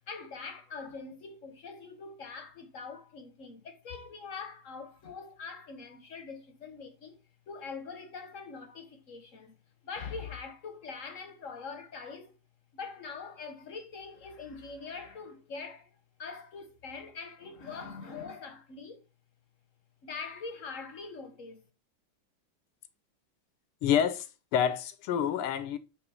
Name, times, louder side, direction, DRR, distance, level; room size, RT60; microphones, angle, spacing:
voice 1, 0.1-7.2 7.5-9.6 9.8-12.3 12.7-19.0 20.0-21.6, left 5 dB, 50° left, 1.0 m, -43 dB
voice 2, 23.8-25.8, left 9 dB, 85° left, 1.7 m, -28 dB
8.3 x 3.3 x 4.7 m
omnidirectional pair, 2.4 m